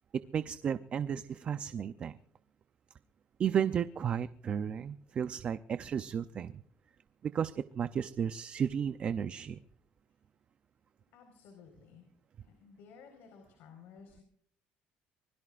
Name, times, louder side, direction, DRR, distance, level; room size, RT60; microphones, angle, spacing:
voice 1, 0.3-2.2 3.4-6.5 7.2-9.6, right 8 dB, 35° right, 12 dB, 0.6 m, -33 dB
voice 2, 11.1-12.1 12.4-14.2, left 6 dB, 70° left, 3 dB, 4.7 m, -55 dB
24.5 x 21.5 x 2.5 m, 0.65 s
cardioid pair, 145°, 4 cm